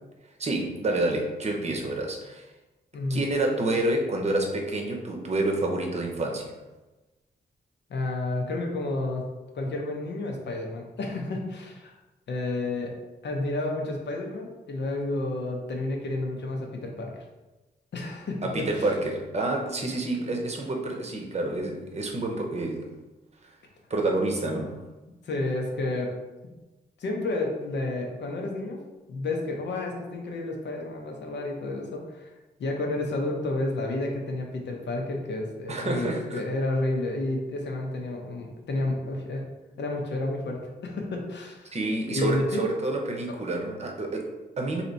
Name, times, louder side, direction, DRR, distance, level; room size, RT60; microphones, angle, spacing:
voice 1, 0.4-2.5 3.1-6.5 18.4-22.9 23.9-24.8 35.7-36.4 41.7-44.8, right 2 dB, 35° right, 1 dB, 0.7 m, -28 dB
voice 2, 2.9-3.3 7.9-9.2 9.5-12.0 12.3-12.9 13.2-17.2 17.9-18.8 20.2-20.3 25.2-26.1 27.0-28.8 29.1-32.3 32.6-39.5 39.8-41.7 42.1-42.6 43.3-43.4, left 2 dB, 75° left, 1 dB, 0.8 m, -30 dB
3.2 x 2.9 x 4.0 m, 1.1 s
cardioid pair, 100°, 18 cm